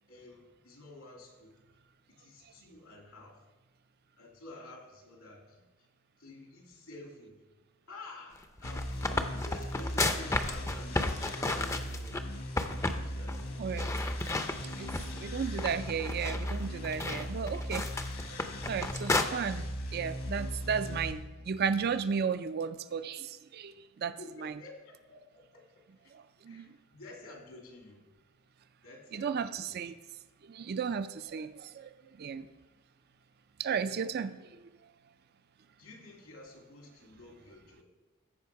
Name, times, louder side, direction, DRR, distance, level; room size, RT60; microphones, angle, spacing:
voice 1, 0.1-1.6 2.1-3.4 4.2-5.9 6.2-7.5 7.9-12.2 12.8-14.3 24.2-25.6 26.0-28.1 28.8-29.9 35.8-37.8, left 2 dB, 80° left, -1 dB, 2.8 m, -51 dB
sound 1, 8.4-12.2 12.6-13.0 13.3-13.4 13.8-15.2 15.6-19.2, left 2 dB, 15° left, 0.5 m, -33 dB
sound 2, 8.6-21.1, equal, 65° left, 1.4 m, -38 dB
sound 3, 12.0-22.1, right 1 dB, 75° right, 0.9 m, -57 dB
voice 2, 14.8-17.9 18.7-24.5 26.1-26.7 29.1-29.9 30.5-31.9 32.2-32.5 33.6-34.4, right 6 dB, 45° right, 12 dB, 0.4 m, -34 dB
14.0 x 5.2 x 4.7 m, 1.2 s
head